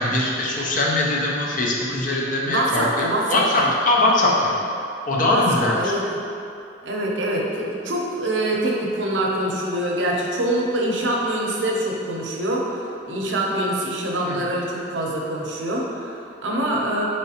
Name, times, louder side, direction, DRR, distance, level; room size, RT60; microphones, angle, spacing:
voice 1, 0.0-4.5 5.1-5.9 14.2-14.5, left 2 dB, 45° left, -2 dB, 0.5 m, -21 dB
voice 2, 2.4-3.7 5.3-6.2 6.8-12.6 13.1-17.0, right 1 dB, 85° right, -2 dB, 0.6 m, -24 dB
3.8 x 3.2 x 2.8 m, 2.6 s
head